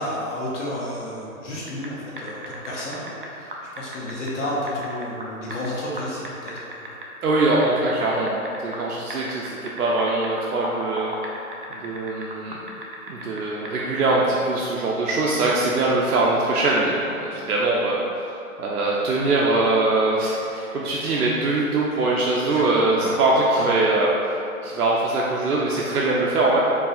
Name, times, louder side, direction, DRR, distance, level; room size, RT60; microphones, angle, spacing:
voice 1, 0.0-6.9 15.6-15.8 22.5-22.6 22.9-23.2 23.6-23.7, left 1 dB, 55° left, -7 dB, 1.1 m, -31 dB
sound 1, 1.7-1.9 2.2-5.7 6.0-7.0 7.3-8.8 9.1-13.4 13.7-14.2, right 1 dB, 40° right, 0.4 m, -35 dB
voice 2, 7.2-11.1 11.8-12.6 13.1-18.3 18.6-24.1 24.6-26.6, right 2 dB, 85° right, -4 dB, 0.7 m, -22 dB
4.7 x 2.6 x 4.1 m, 2.7 s
hypercardioid pair, 165°, 44 cm